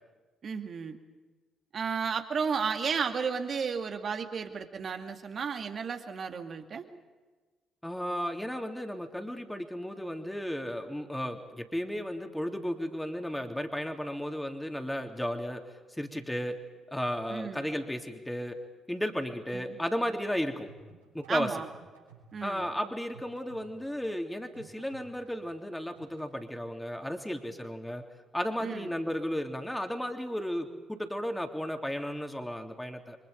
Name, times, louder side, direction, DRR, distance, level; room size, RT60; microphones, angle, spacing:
voice 1, 0.4-1.0 1.7-6.9 17.3-17.7 19.5-19.7 21.3-21.7 22.3-22.7 28.6-29.0, right 6 dB, 50° right, 6 dB, 2.3 m, -33 dB
voice 2, 7.8-15.6 16.0-16.6 16.9-18.6 18.9-20.7 21.1-21.5 22.4-28.0 28.3-33.2, equal, 5° left, 4 dB, 3.2 m, -34 dB
sound 1, 20.7-26.3, right 5 dB, 90° right, 6.4 m, -56 dB
30.0 x 24.5 x 5.3 m, 1.3 s
figure-of-eight pair, 45°, 0 cm